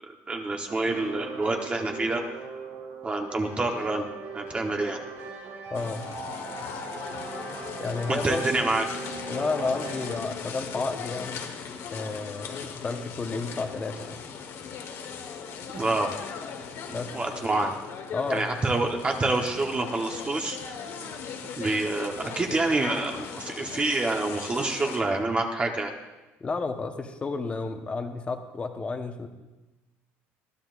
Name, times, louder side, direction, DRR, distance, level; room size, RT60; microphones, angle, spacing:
voice 1, 0.3-2.2 3.0-4.0 4.3-5.0 8.1-8.8 15.7-16.1 16.9-17.7 18.3-20.6 21.6-25.9, right 2 dB, 20° right, 3 dB, 1.1 m, -27 dB
sound 1, 0.7-10.2, right 4 dB, 75° right, 5.4 m, -40 dB
sound 2, 5.7-25.0, left 6 dB, 55° left, 1.4 m, -38 dB
voice 2, 5.7-6.0 7.8-8.4 9.3-11.5 11.9-14.2 16.9-17.1 18.1-18.6 26.4-29.3, left 3 dB, 20° left, 6 dB, 1.1 m, -31 dB
20.5 x 13.0 x 2.6 m, 1.1 s
cardioid pair, 125°, 5 cm